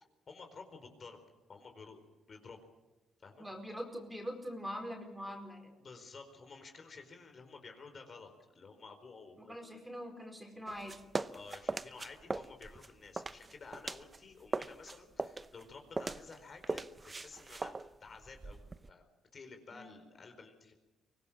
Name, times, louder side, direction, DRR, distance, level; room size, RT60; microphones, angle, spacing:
voice 1, 0.3-1.2 1.5-2.6 3.2-3.4 5.8-9.6 11.3-16.9 17.2-17.7 18.0-19.1 19.3-20.7, left 4 dB, 45° left, 5 dB, 4.5 m, -52 dB
voice 2, 3.4-5.7 9.4-11.0 19.7-20.0, equal, 10° right, 4 dB, 4.5 m, -43 dB
sound 1, 10.7-14.2 14.5-18.9, right 3 dB, 25° right, 0.8 m, -40 dB
24.5 x 18.0 x 7.4 m, 1.1 s
cardioid pair, 90°, 0 cm